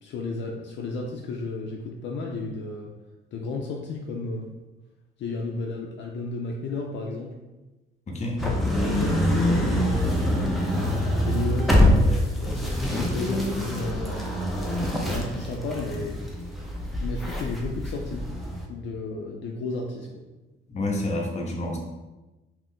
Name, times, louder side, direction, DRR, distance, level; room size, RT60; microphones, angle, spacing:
voice 1, 0.0-2.9 3.3-4.5 5.2-7.3 8.4-10.5 11.2-14.3 15.0-16.2 17.0-18.3 18.7-20.2, left 3 dB, 65° left, 0 dB, 0.4 m, -33 dB
voice 2, 8.1-8.4 20.7-21.8, left 1 dB, 35° left, 0 dB, 0.7 m, -28 dB
sound 1, 8.4-18.6, left 1 dB, ahead, 0.5 m, -25 dB
2.6 x 2.4 x 3.5 m, 1.1 s
cardioid pair, 90°, 20 cm